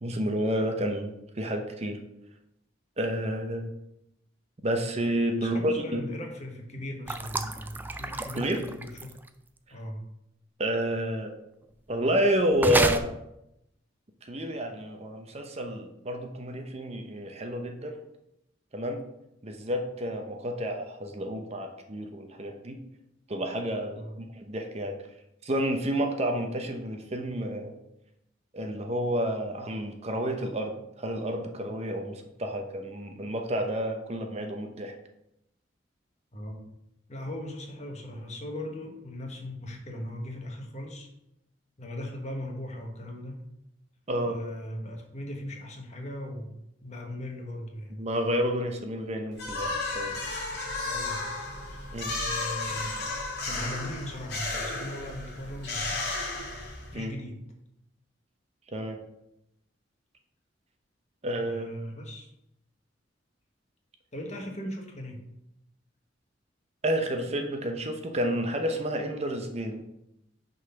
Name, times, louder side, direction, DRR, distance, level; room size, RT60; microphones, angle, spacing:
voice 1, 0.0-2.0 3.0-3.7 4.6-6.0 8.3-8.6 10.6-11.3 11.9-13.2 14.2-17.9 18.7-19.0 19.4-22.8 23.3-25.0 25.4-27.8 28.5-34.9 44.1-44.4 48.0-50.2 51.9-52.1 56.9-57.1 58.7-59.0 61.2-61.7 66.8-69.8, equal, 35° right, 4 dB, 0.7 m, -30 dB
voice 2, 5.4-9.1 9.7-10.0 23.9-24.2 36.3-36.7 37.1-41.1 41.8-43.4 44.2-46.5 46.8-48.2 50.8-51.2 52.1-53.0 53.5-56.1 56.9-57.4 61.4-62.3 64.1-65.2, left 1 dB, 40° left, 2 dB, 1.2 m, -38 dB
sound 1, 7.1-9.3 12.6-13.0, right 2 dB, 10° right, 0.3 m, -29 dB
sound 2, 49.4-57.0, left 3 dB, 60° left, 2.1 m, -33 dB
6.1 x 4.0 x 5.7 m, 0.83 s
head